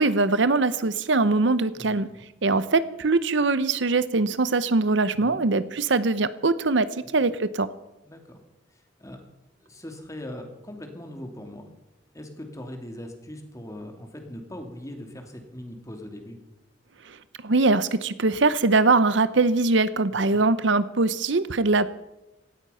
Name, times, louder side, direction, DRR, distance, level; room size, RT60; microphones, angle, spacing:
voice 1, 0.0-2.1 2.4-6.9 7.1-7.7 17.1-17.2 17.4-21.9, right 3 dB, 70° right, 15 dB, 0.8 m, -22 dB
voice 2, 1.7-2.2 5.1-5.4 8.0-8.4 8.7-9.2 9.6-11.7 12.1-16.4 20.3-20.4, left 1 dB, 15° left, 4 dB, 2.6 m, -40 dB
17.5 x 13.5 x 5.6 m, 0.98 s
head